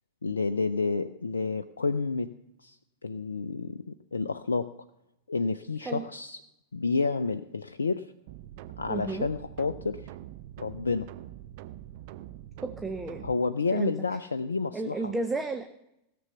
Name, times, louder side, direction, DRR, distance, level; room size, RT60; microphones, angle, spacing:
voice 1, 0.2-2.3 2.6-2.8 3.0-4.7 5.3-6.4 6.7-8.1 8.8-10.0 10.6-11.1 13.2-15.1, left 4 dB, 75° left, 11 dB, 0.4 m, -30 dB
sound 1, 8.3-13.3, right 13 dB, 50° right, 0.7 m, -44 dB
voice 2, 8.9-9.3 12.6-13.2 13.7-14.0 14.7-15.7, right 3 dB, 10° right, 7 dB, 0.8 m, -32 dB
17.0 x 6.9 x 7.0 m, 0.85 s
figure-of-eight pair, 90°, 0 cm